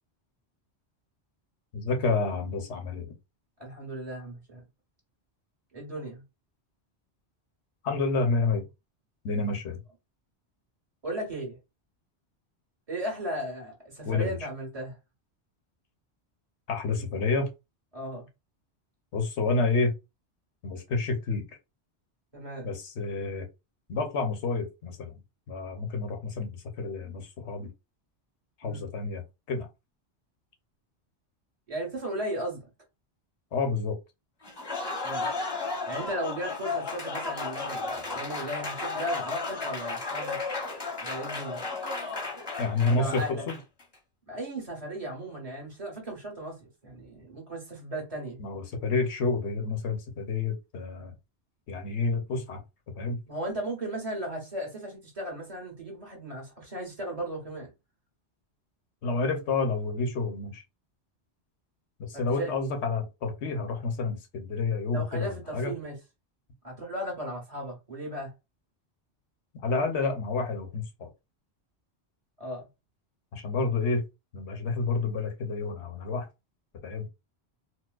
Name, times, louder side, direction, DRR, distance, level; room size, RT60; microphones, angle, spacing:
voice 1, 1.7-3.1 7.8-8.6 9.2-9.8 14.1-14.4 16.7-17.5 19.1-19.9 20.6-21.4 22.6-23.5 23.9-25.2 25.5-27.7 28.6-29.2 29.5-29.7 33.5-34.0 42.6-43.6 48.4-51.1 51.7-52.6 53.0-53.2 59.0-60.6 62.1-65.7 69.6-71.1 73.3-74.0 74.3-76.3 76.8-77.1, left 3 dB, 90° left, 1.1 m, -29 dB
voice 2, 3.6-4.6 5.7-6.2 11.0-11.6 12.9-14.9 17.9-18.2 22.3-22.7 28.6-28.8 31.7-32.6 35.0-35.3 35.9-40.4 41.0-41.6 42.9-43.4 44.3-46.6 46.8-48.4 53.3-57.7 62.1-62.5 64.9-65.9 66.6-68.3 72.4-72.6, right 1 dB, 35° right, 1.3 m, -36 dB
Applause, 34.4-43.8, left 3 dB, 25° left, 0.7 m, -34 dB
4.3 x 2.1 x 2.3 m
omnidirectional pair, 1.1 m